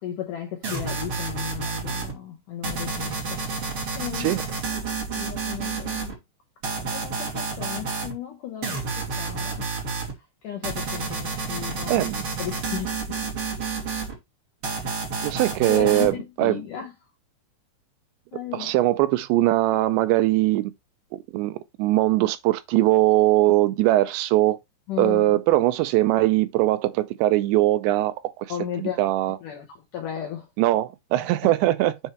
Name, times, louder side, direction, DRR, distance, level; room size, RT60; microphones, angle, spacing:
voice 1, 0.0-4.4 4.7-4.8 5.2-6.2 6.9-9.7 10.4-12.1 12.4-13.0 15.7-16.9 18.3-18.7 24.9-25.3 28.5-29.0 29.4-29.6 29.9-30.5, left 10 dB, 80° left, 1.8 m, -35 dB
sound 1, 0.6-2.1 2.6-6.1 6.6-8.1 8.6-10.1 10.6-14.1 14.6-16.1, right 4 dB, 35° right, 3.0 m, -30 dB
voice 2, 11.9-12.2 15.2-16.6 18.3-20.7 21.1-24.6 25.0-28.3 28.8-29.4 30.6-32.0, right 16 dB, 85° right, 2.7 m, -21 dB
7.3 x 4.6 x 4.4 m
omnidirectional pair, 5.3 m